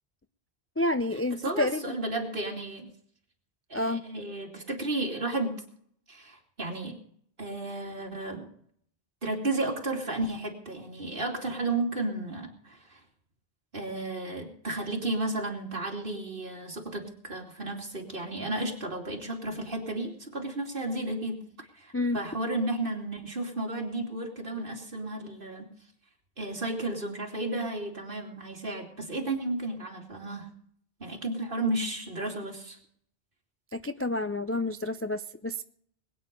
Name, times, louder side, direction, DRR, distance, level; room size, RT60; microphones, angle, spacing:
voice 1, 0.8-1.9 3.7-4.0 21.9-22.2 33.7-35.6, left 2 dB, 20° left, 9 dB, 0.3 m, -29 dB
voice 2, 1.4-2.9 3.7-5.5 6.1-7.0 7.4-8.5 9.2-13.0 13.7-25.7 26.4-30.5 31.0-32.8, right 2 dB, 55° right, 1 dB, 2.9 m, -33 dB
21.0 x 9.2 x 5.2 m, 0.64 s
omnidirectional pair, 1.1 m